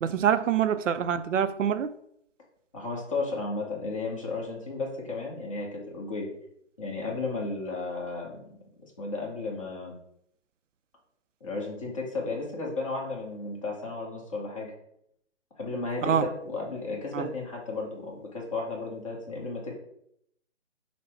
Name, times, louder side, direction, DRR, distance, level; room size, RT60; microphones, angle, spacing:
voice 1, 0.0-1.9 16.0-16.2 17.1-17.3, right 8 dB, 85° right, 12 dB, 0.5 m, -25 dB
voice 2, 2.7-6.3 6.8-8.4 8.8-9.9 11.4-14.7 15.6-19.7, left 3 dB, 25° left, -3 dB, 1.0 m, -34 dB
5.7 x 2.1 x 4.3 m, 0.73 s
hypercardioid pair, 160°, 37 cm